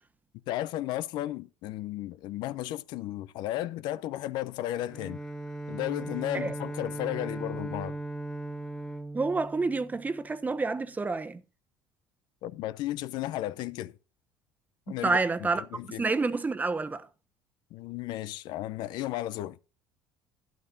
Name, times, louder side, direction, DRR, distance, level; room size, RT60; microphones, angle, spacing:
voice 1, 0.5-5.2 5.7-8.0 12.4-13.9 14.9-16.1 17.7-19.6, left 14 dB, 70° left, 0.6 m, -34 dB
Bowed string instrument, 4.8-10.5, right 2 dB, 10° left, 1.5 m, -38 dB
voice 2, 9.1-11.4 14.9-15.6 16.0-17.1, right 3 dB, 20° right, 1.1 m, -28 dB
12.5 x 11.0 x 2.6 m
supercardioid pair, 90°, 8 cm